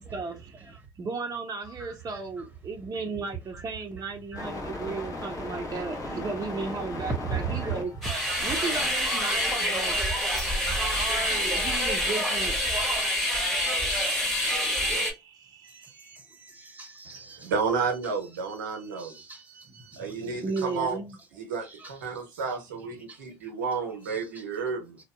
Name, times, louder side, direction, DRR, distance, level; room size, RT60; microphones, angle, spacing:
voice 1, 0.1-7.9 8.4-10.0 10.8-12.6 13.9-16.2 19.9-21.2 22.9-23.0, right 4 dB, 35° right, 0.6 m, -35 dB
voice 2, 1.6-2.2 3.5-3.6 4.3-4.4 5.5-5.6 7.0-7.7 8.8-8.9 9.5-9.6 12.7-13.1 13.8-14.2 15.6-17.5 18.7-20.3 20.6-20.7 21.6-22.1 23.1-23.2 24.1-24.4, right 6 dB, 15° right, 1.0 m, -39 dB
sound 1, 4.3-10.4, left 2 dB, 35° left, 1.1 m, -39 dB
sound 2, 8.0-15.1, equal, ahead, 1.3 m, -26 dB
voice 3, 17.1-19.2 20.0-21.0 21.3-25.0, right 5 dB, 90° right, 0.8 m, -31 dB
2.7 x 2.3 x 2.2 m
hypercardioid pair, 60°, 10 cm